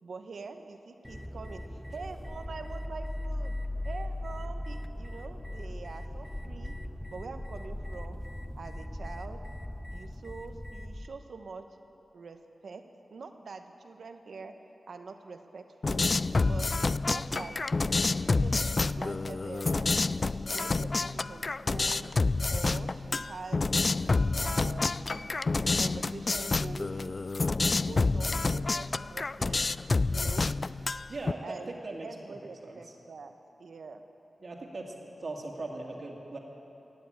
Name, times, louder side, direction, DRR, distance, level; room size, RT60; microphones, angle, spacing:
voice 1, 0.0-3.5 3.8-6.7 7.1-8.2 8.6-9.4 9.9-11.6 12.1-12.4 12.6-12.8 13.1-14.5 14.9-16.1 16.4-17.6 18.4-19.9 20.5-22.1 22.5-23.7 24.4-25.3 25.6-27.2 27.7-29.7 30.0-30.5 31.4-31.7 32.0-33.3 33.6-34.0, right 4 dB, 75° right, 7 dB, 1.0 m, -44 dB
sound 1, 1.0-11.1, left 1 dB, 5° left, 0.7 m, -38 dB
sound 2, 15.8-31.3, left 3 dB, 45° left, 0.3 m, -28 dB
voice 2, 31.1-32.1 32.6-33.0 34.4-34.9 35.2-36.4, right 2 dB, 55° right, 0 dB, 2.1 m, -39 dB
16.0 x 9.6 x 8.8 m, 3.0 s
wide cardioid pair, 75°, 0 cm